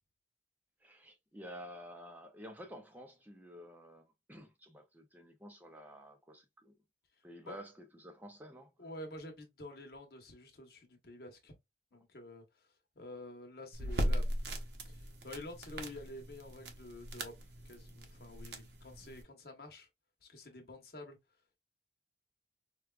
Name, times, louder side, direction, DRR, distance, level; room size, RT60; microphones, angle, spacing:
voice 1, 0.8-6.7 7.2-8.7, equal, 10° right, 0.5 m, -51 dB
voice 2, 8.8-11.5 11.9-12.4 13.0-14.5 14.9-17.3 17.6-19.9 20.2-21.2, left 1 dB, 60° left, 1.0 m, -49 dB
sound 1, 13.7-19.2, equal, 80° right, 0.9 m, -39 dB
4.6 x 2.3 x 2.3 m
head